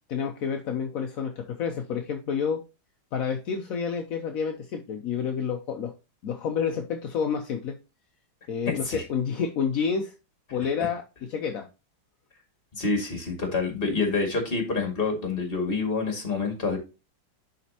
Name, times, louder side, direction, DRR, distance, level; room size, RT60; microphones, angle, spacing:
voice 1, 0.1-2.6 3.1-5.9 6.2-7.7 8.5-10.1 10.5-11.0 11.3-11.6, left 6 dB, 60° left, 3 dB, 0.9 m, -29 dB
voice 2, 8.7-9.0 12.8-16.8, left 4 dB, 30° left, 2 dB, 2.2 m, -27 dB
11.0 x 4.2 x 2.8 m, 0.29 s
omnidirectional pair, 2.2 m